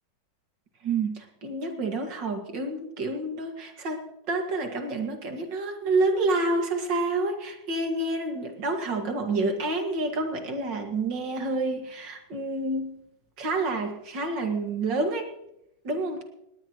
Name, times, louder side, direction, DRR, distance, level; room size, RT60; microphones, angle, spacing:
voice 1, 0.8-13.0 13.4-15.3 15.8-16.2, right 2 dB, 60° right, 4 dB, 2.7 m, -28 dB
20.0 x 18.0 x 3.1 m, 0.83 s
omnidirectional pair, 2.3 m